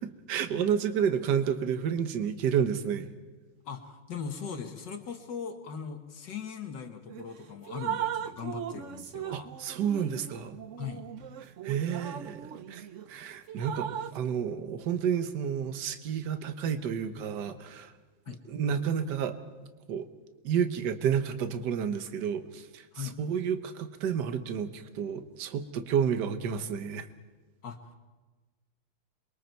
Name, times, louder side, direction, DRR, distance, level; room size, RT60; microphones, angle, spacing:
voice 1, 0.0-3.1 9.3-10.6 11.4-17.9 18.5-19.4 19.9-20.1 20.4-22.8 23.2-27.1, right 8 dB, 55° right, 9 dB, 1.6 m, -30 dB
voice 2, 3.7-9.5 10.8-11.0 18.3-18.4 22.9-23.2 27.6-28.0, left 6 dB, 60° left, 5 dB, 2.0 m, -39 dB
Drip, 7.1-7.3 7.7-13.1 13.5-14.2, right 9 dB, 80° right, 0.6 m, -38 dB
27.5 x 23.0 x 4.6 m, 1.3 s
omnidirectional pair, 2.3 m